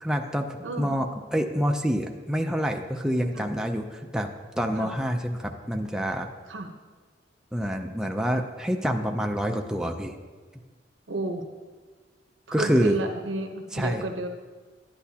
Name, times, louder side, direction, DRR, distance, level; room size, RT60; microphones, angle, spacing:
voice 1, 0.0-1.1 1.3-6.3 7.5-10.2 12.5-13.0 13.7-14.0, equal, 5° right, 3 dB, 0.5 m, -27 dB
voice 2, 11.1-11.4 12.5-14.3, right 1 dB, 85° right, 5 dB, 0.9 m, -31 dB
10.5 x 10.5 x 2.8 m, 1.4 s
head